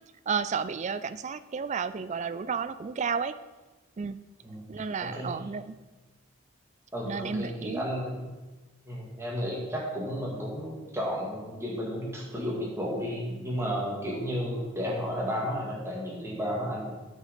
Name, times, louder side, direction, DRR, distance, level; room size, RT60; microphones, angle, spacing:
voice 1, 0.3-3.3 4.0-4.2 4.7-5.8 7.0-7.9, right 5 dB, 35° right, 13 dB, 0.3 m, -32 dB
voice 2, 5.0-5.4 6.9-8.3 8.9-16.9, equal, 10° right, -4 dB, 2.1 m, -33 dB
9.5 x 6.5 x 5.1 m, 1.2 s
head